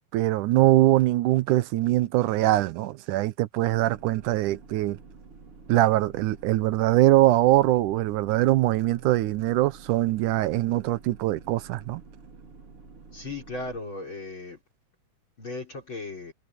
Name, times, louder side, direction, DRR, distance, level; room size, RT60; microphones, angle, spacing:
voice 1, 0.1-5.0 5.7-12.0, right 16 dB, 80° right, 2.3 m, -22 dB
sound 1, 3.7-13.8, right 4 dB, 45° right, 4.6 m, -49 dB
voice 2, 13.1-14.6 15.4-16.3, left 2 dB, 35° left, 5.0 m, -36 dB
omnidirectional pair, 3.7 m